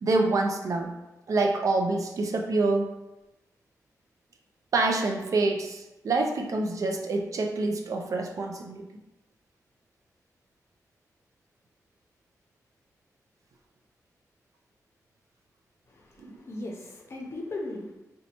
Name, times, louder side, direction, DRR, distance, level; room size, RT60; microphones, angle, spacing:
voice 1, 0.0-0.9 1.3-2.9 4.7-8.9 16.2-16.4, right 3 dB, 60° right, 3 dB, 0.4 m, -26 dB
voice 2, 15.9-17.9, left 2 dB, 45° left, 0 dB, 0.6 m, -38 dB
4.0 x 2.2 x 2.8 m, 0.96 s
wide cardioid pair, 170°, 6 cm